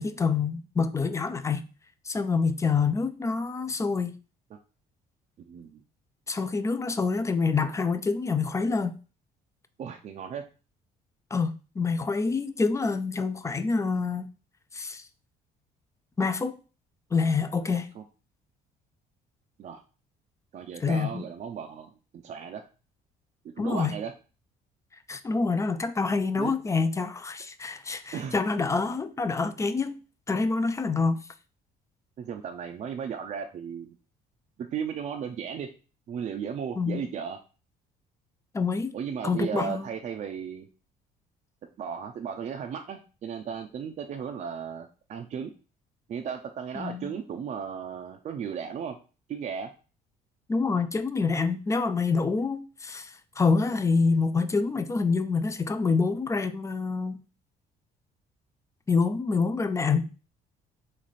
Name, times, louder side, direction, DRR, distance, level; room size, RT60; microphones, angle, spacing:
voice 1, 0.0-1.6 2.1-4.1 6.3-9.0 11.3-14.3 14.7-15.0 16.2-16.6 17.1-17.9 20.8-21.2 23.6-23.9 25.1-30.0 30.3-31.2 36.8-37.0 38.5-39.0 39.2-39.9 46.8-47.2 50.5-57.2 58.9-60.1, left 4 dB, 20° left, 0.3 m, -26 dB
voice 2, 5.4-5.8 9.8-10.4 17.7-18.0 19.6-19.8 20.5-21.9 22.2-22.6 23.6-24.1 26.4-26.5 28.1-28.4 32.2-34.0 34.6-35.7 36.1-37.4 38.9-40.7 41.8-45.5 46.1-49.0 49.3-49.7, right 7 dB, 45° right, 0.5 m, -35 dB
3.2 x 3.2 x 4.1 m
cardioid pair, 110°, 17 cm